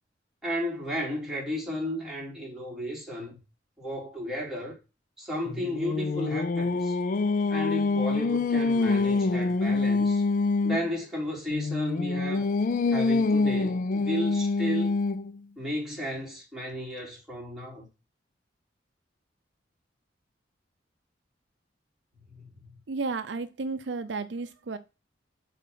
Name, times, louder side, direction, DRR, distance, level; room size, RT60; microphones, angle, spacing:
voice 1, 0.4-3.4 3.8-4.8 5.2-7.0 7.5-10.2 10.6-12.4 12.9-15.0 15.6-17.9 22.4-22.7, equal, 5° right, 3.9 m, -33 dB
Singing, 5.5-10.9 11.5-15.4, left 3 dB, 45° left, 0.4 m, -26 dB
voice 2, 22.9-24.8, right 3 dB, 70° right, 0.6 m, -32 dB
8.3 x 4.2 x 5.5 m
head